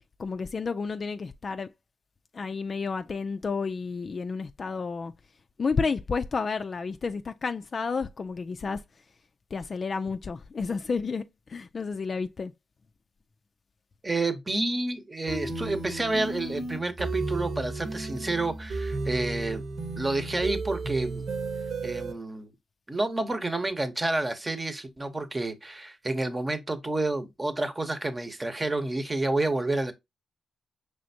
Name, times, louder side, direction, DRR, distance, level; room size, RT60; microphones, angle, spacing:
voice 1, 0.2-1.7 2.3-5.1 5.6-8.8 9.5-12.5, left 4 dB, 50° left, 0.3 m, -31 dB
voice 2, 14.0-19.6 20.0-21.2 21.8-22.5 22.9-29.9, right 2 dB, 25° right, 0.9 m, -29 dB
sound 1, 15.3-22.1, right 3 dB, 70° right, 1.3 m, -33 dB
5.0 x 3.4 x 2.7 m
supercardioid pair, 55°, 0 cm